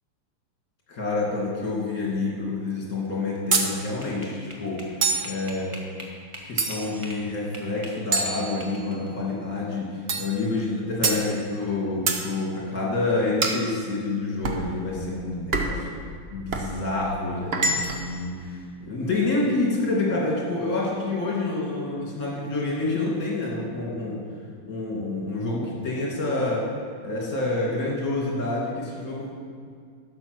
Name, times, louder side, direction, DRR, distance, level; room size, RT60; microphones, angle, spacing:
voice 1, 0.9-4.8 5.2-5.7 6.4-16.0 16.3-24.2 24.6-26.6 27.0-29.3, left 2 dB, 40° left, -4 dB, 2.7 m, -28 dB
sound 1, 3.4-7.2 7.5-9.1, equal, 15° right, 1.2 m, -41 dB
sound 2, 3.5-3.8 5.0-5.4 6.6-7.0 8.1-9.0 10.1-10.4 11.0-11.3 12.1-12.3 13.4-13.7 14.4-14.7 15.5-15.9 16.5-16.7 17.5-18.1, right 3 dB, 70° right, 0.5 m, -26 dB
12.0 x 7.6 x 6.2 m, 2.2 s
omnidirectional pair, 2.4 m